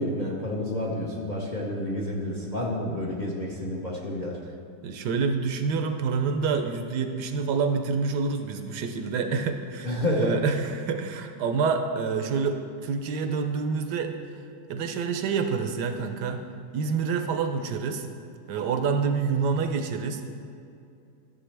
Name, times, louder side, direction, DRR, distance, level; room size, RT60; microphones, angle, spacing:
voice 1, 0.0-4.4 9.8-10.3, left 1 dB, 45° left, -2 dB, 0.6 m, -29 dB
voice 2, 4.8-14.1 14.7-16.4 16.7-18.1 18.5-20.3, right 5 dB, 70° right, 6 dB, 1.1 m, -27 dB
12.5 x 6.9 x 3.3 m, 2.6 s
omnidirectional pair, 2.0 m